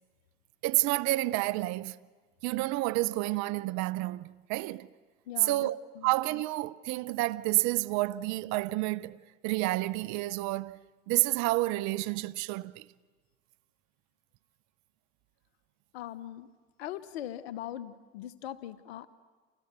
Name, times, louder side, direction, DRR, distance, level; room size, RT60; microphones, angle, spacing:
voice 1, 0.6-2.0 2.4-4.9 5.4-5.8 6.0-10.8 11.1-12.8, right 19 dB, 65° right, 0.7 m, -29 dB
voice 2, 5.3-5.7 5.9-6.1 15.9-16.5 16.8-19.1, left 12 dB, 90° left, 1.0 m, -40 dB
30.0 x 29.0 x 6.8 m
supercardioid pair, 90°, 31 cm